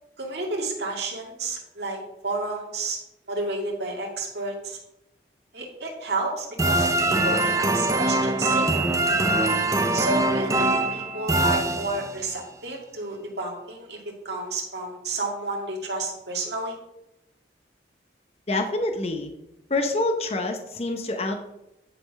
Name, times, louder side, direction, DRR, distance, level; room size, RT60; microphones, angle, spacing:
voice 1, 0.2-2.0 2.2-3.0 3.3-4.8 5.5-8.9 9.9-16.8, right 3 dB, 65° right, 0 dB, 2.1 m, -31 dB
sound 1, 6.6-12.3, right 2 dB, 20° right, 0.5 m, -23 dB
voice 2, 18.5-19.3 19.7-21.4, left 2 dB, 35° left, 5 dB, 0.8 m, -26 dB
10.0 x 4.2 x 5.3 m, 0.87 s
head